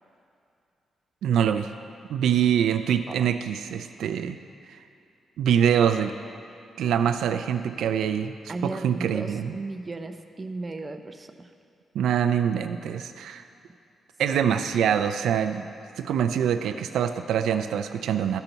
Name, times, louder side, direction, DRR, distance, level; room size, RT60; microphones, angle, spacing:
voice 1, 1.2-1.7 2.1-4.4 4.7-4.8 5.4-6.2 6.8-9.6 11.9-13.4 14.2-15.7 16.0-18.4, right 8 dB, 90° right, 9 dB, 0.3 m, -24 dB
voice 2, 8.5-11.5, right 2 dB, 25° right, 6 dB, 0.5 m, -35 dB
13.5 x 5.6 x 4.0 m, 2.6 s
cardioid pair, 130°, 0 cm